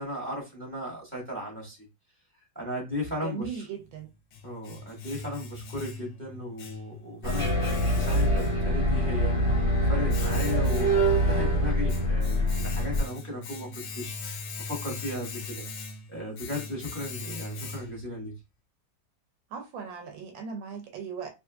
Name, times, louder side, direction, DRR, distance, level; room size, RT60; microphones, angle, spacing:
voice 1, 0.0-1.8 2.5-3.7 4.4-15.6 16.1-18.3, left 1 dB, 5° left, 1.4 m, -36 dB
voice 2, 3.2-4.1 19.5-21.3, right 6 dB, 75° right, 1.4 m, -38 dB
Domestic sounds home sounds, 3.8-18.2, left 3 dB, 80° left, 1.5 m, -41 dB
sound 1, 7.2-13.0, equal, 35° left, 1.0 m, -24 dB
3.7 x 2.9 x 2.3 m
omnidirectional pair, 2.1 m